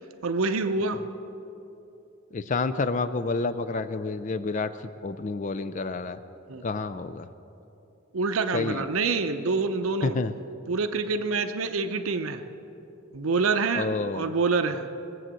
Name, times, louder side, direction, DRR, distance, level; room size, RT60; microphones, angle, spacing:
voice 1, 0.2-1.0 6.5-6.6 8.1-10.2 10.7-12.4 13.1-13.9 14.1-14.9, right 4 dB, 75° right, 8 dB, 0.7 m, -26 dB
voice 2, 2.3-6.2 6.6-7.3 8.5-8.8 10.0-10.3 13.8-14.3, left 3 dB, 35° left, 12 dB, 0.4 m, -29 dB
21.0 x 7.8 x 7.5 m, 2.9 s
head